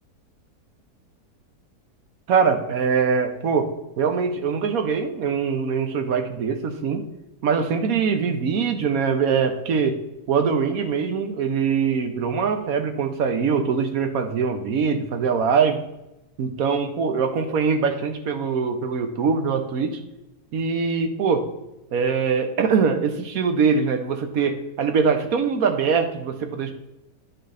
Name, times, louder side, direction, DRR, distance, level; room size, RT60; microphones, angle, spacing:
voice 1, 2.3-3.7 4.0-7.0 7.4-10.0 10.3-15.8 16.4-20.0 20.5-21.5 21.9-26.7, right 5 dB, 60° right, 7 dB, 1.2 m, -22 dB
9.7 x 6.0 x 3.3 m, 0.95 s
omnidirectional pair, 1.8 m